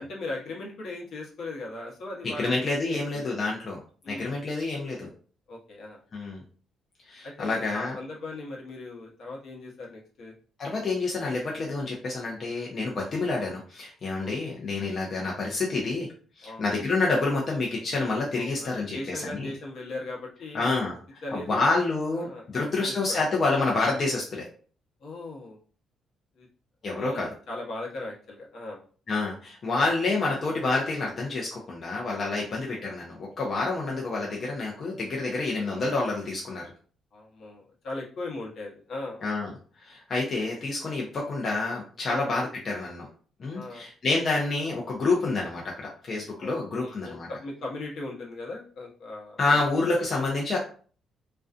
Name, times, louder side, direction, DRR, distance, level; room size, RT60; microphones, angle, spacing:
voice 1, 0.0-2.5 2.8-3.4 4.0-4.3 5.5-6.0 7.2-10.3 13.1-13.3 14.2-14.6 16.4-16.7 18.3-20.8 21.2-21.7 22.1-23.4 25.0-25.6 26.4-26.5 26.9-28.8 29.9-30.0 32.3-32.6 37.1-39.2 42.1-42.3 43.5-43.9 46.4-49.6 50.0-50.1, left 2 dB, 65° left, -2 dB, 0.8 m, -39 dB
voice 2, 2.2-3.8 4.1-5.1 6.1-6.4 7.1-8.0 10.6-16.1 16.4-19.0 19.2-19.5 20.5-24.5 26.8-27.3 29.1-36.6 39.2-39.5 39.8-43.1 43.4-47.3 49.4-50.6, left 3 dB, 45° left, -3 dB, 0.6 m, -28 dB
2.5 x 2.2 x 2.4 m, 0.42 s
cardioid pair, 90°, 0 cm